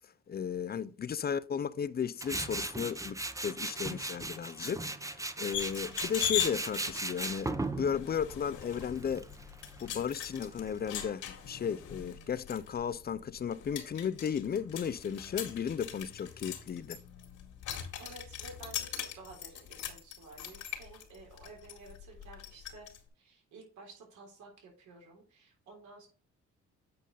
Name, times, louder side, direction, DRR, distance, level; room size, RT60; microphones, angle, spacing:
voice 1, 0.3-9.3 9.8-17.0, left 7 dB, 30° left, 0.5 m, -35 dB
Tools, 2.2-11.0, right 2 dB, 10° right, 0.9 m, -38 dB
sound 1, 5.5-23.0, left 10 dB, 80° left, 2.1 m, -41 dB
voice 2, 18.0-22.9 23.2-26.1, right 3 dB, 75° right, 3.5 m, -52 dB
8.6 x 5.2 x 3.9 m
supercardioid pair, 70°, 30 cm